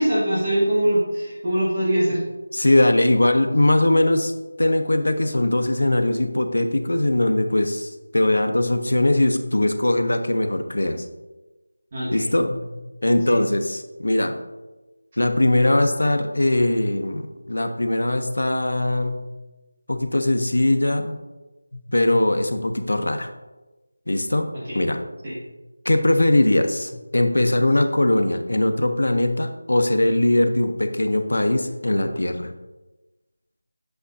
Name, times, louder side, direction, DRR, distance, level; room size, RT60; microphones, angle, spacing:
voice 1, 0.0-2.2 11.9-12.2 13.3-13.4 25.2-25.3, right 1 dB, 25° right, -9 dB, 1.6 m, -22 dB
voice 2, 2.5-4.3 4.6-11.0 12.1-12.6 13.0-14.4 15.2-19.2 19.9-21.2 21.7-23.3 24.1-24.5 24.7-25.0 25.8-32.5, left 1 dB, 80° left, 6 dB, 0.9 m, -20 dB
8.0 x 6.4 x 2.7 m, 1.1 s
figure-of-eight pair, 175°, 0 cm